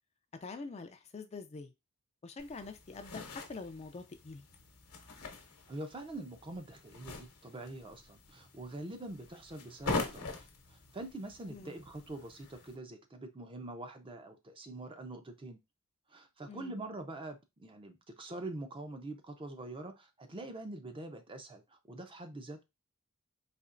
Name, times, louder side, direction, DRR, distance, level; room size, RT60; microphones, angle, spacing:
voice 1, 0.4-1.7 2.2-4.4 11.5-11.8 16.5-16.7, left 4 dB, 30° left, 0.4 m, -45 dB
sound 1, 2.4-12.7, left 3 dB, 70° left, 0.9 m, -43 dB
voice 2, 5.7-10.3 10.7-15.6 16.1-22.6, right 2 dB, 25° right, 0.5 m, -44 dB
4.2 x 2.9 x 2.4 m
head